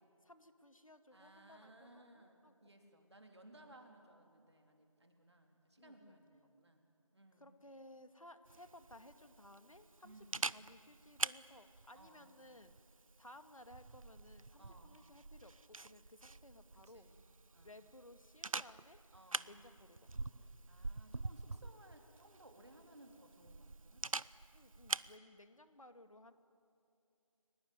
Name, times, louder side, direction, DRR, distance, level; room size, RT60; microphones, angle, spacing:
voice 1, 0.2-2.9 5.8-6.2 7.4-12.8 13.2-17.1 17.6-19.0 19.5-20.1 24.5-26.3, left 1 dB, 70° left, 9 dB, 2.1 m, -59 dB
voice 2, 1.1-6.8 7.1-7.5 10.0-10.7 11.9-12.5 14.6-15.1 16.7-17.2 17.5-17.8 19.1-19.7 20.4-24.0, right 1 dB, 50° right, 3 dB, 3.3 m, -61 dB
Camera, 8.5-25.2, right 3 dB, 70° right, 0.6 m, -46 dB
30.0 x 17.5 x 9.4 m, 2.7 s
figure-of-eight pair, 170°, 18 cm